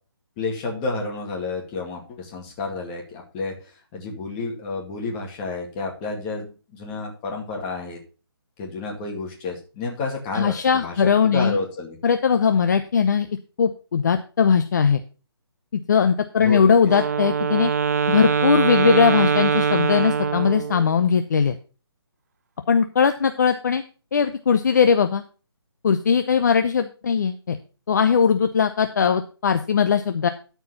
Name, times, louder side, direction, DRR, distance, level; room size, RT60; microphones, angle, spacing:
voice 1, 0.4-3.5 3.9-8.0 8.6-10.9 11.2-12.0 16.4-16.7, left 3 dB, 15° left, 0 dB, 2.2 m, -30 dB
voice 2, 10.3-11.6 12.0-13.3 13.6-15.0 15.7-17.7 18.1-21.6 22.7-23.8 24.1-25.2 25.8-27.6 27.9-30.3, left 6 dB, 45° left, 8 dB, 0.7 m, -19 dB
Wind instrument woodwind instrument, 16.8-20.9, right 6 dB, 40° right, 0.5 m, -22 dB
13.0 x 4.7 x 5.7 m, 0.35 s
hypercardioid pair, 165°, 14 cm